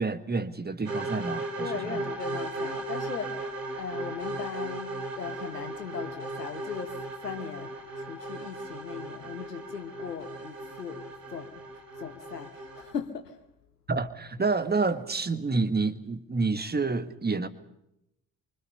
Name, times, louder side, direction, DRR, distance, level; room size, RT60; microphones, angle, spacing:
voice 1, 0.0-2.0 13.9-17.5, right 3 dB, 20° right, 1.6 m, -28 dB
sound 1, 0.9-12.9, right 2 dB, 85° right, 3.2 m, -37 dB
voice 2, 1.6-11.0 11.3-11.6 12.0-13.4, left 7 dB, 85° left, 1.2 m, -38 dB
25.5 x 25.0 x 5.6 m
figure-of-eight pair, 45°, 46 cm